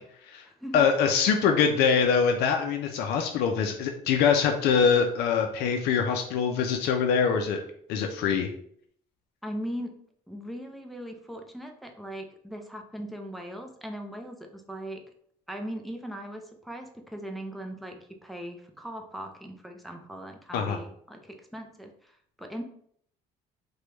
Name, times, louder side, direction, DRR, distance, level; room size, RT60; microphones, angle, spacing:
voice 1, 0.7-7.6 7.9-8.5 20.5-20.8, left 6 dB, 75° left, 4 dB, 0.4 m, -24 dB
voice 2, 9.4-9.9 10.3-15.0 15.5-22.6, equal, ahead, 3 dB, 0.4 m, -39 dB
3.0 x 2.2 x 3.2 m, 0.64 s
cardioid pair, 110°, 17 cm